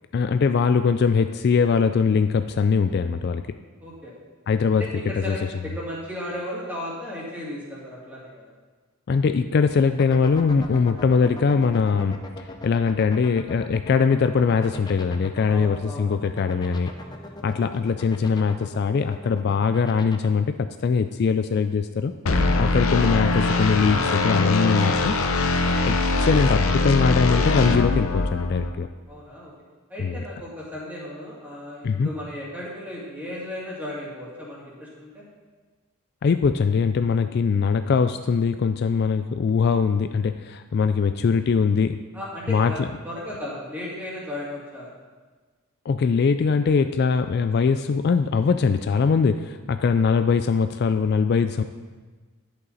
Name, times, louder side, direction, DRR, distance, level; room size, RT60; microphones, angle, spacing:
voice 1, 0.1-3.4 4.5-4.8 5.3-5.4 9.1-12.2 12.6-16.9 17.4-22.1 22.6-25.2 25.9-28.9 30.0-30.1 31.8-32.1 36.2-42.0 42.5-42.9 45.9-51.6, left 5 dB, 50° left, 9 dB, 0.3 m, -21 dB
voice 2, 3.8-4.1 4.7-8.5 15.5-16.1 16.6-17.5 29.1-29.5 29.9-35.2 42.1-44.9, left 1 dB, 10° right, -6 dB, 2.6 m, -35 dB
sound 1, 9.9-20.3, left 2 dB, 20° left, 0.7 m, -38 dB
sound 2, 22.3-28.7, left 2 dB, 80° left, 0.8 m, -22 dB
11.0 x 8.3 x 4.0 m, 1.4 s
head